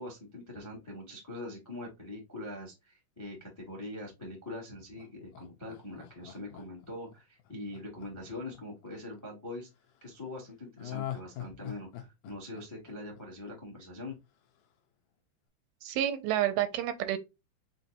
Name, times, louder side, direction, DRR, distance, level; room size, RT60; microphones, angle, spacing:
voice 1, 0.0-9.7 10.0-14.2, left 1 dB, 20° left, 0.4 m, -43 dB
Laughter, 5.0-9.2 10.8-13.8 14.1-14.2, left 11 dB, 75° left, 1.9 m, -43 dB
voice 2, 15.8-17.2, right 12 dB, 85° right, 2.4 m, -29 dB
6.1 x 2.7 x 2.6 m
omnidirectional pair, 4.4 m